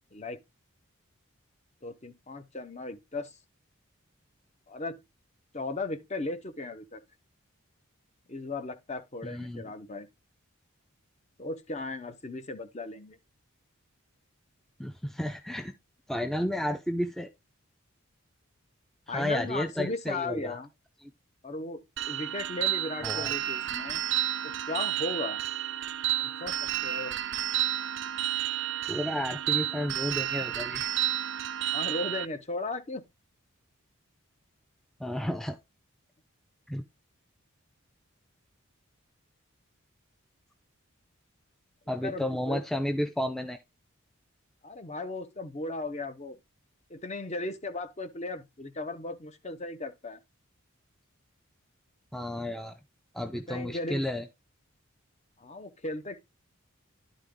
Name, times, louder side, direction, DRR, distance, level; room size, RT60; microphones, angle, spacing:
voice 1, 1.8-3.4 4.7-5.0 5.5-7.0 8.3-10.1 11.4-13.2 19.1-20.7 21.4-24.1 24.4-25.4 26.2-27.2 31.7-33.0 42.0-42.6 44.6-46.4 46.9-50.2 53.3-54.0 55.4-56.2, left 2 dB, 30° left, 0.9 m, -36 dB
voice 2, 9.2-9.6 14.8-15.7 16.1-17.3 19.1-20.6 23.0-23.3 28.9-30.9 35.0-35.6 36.7-36.8 41.9-43.6 52.1-52.7 53.1-54.2, left 1 dB, ahead, 0.4 m, -32 dB
sound 1, 22.0-32.3, right 12 dB, 55° right, 0.4 m, -31 dB
11.0 x 3.9 x 3.6 m
head